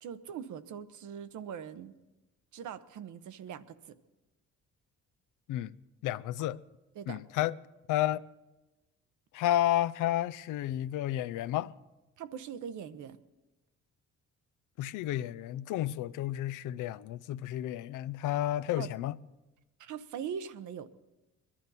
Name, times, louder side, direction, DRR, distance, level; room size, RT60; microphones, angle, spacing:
voice 1, 0.0-1.9 2.5-3.9 7.0-7.2 12.2-13.2 18.8-18.9 19.8-20.9, right 8 dB, 75° right, 0.9 m, -41 dB
voice 2, 6.0-6.6 7.1-7.5 7.9-8.2 9.3-11.7 14.8-19.2, left 13 dB, 85° left, 0.5 m, -31 dB
21.5 x 12.5 x 4.1 m
cardioid pair, 90°, 30 cm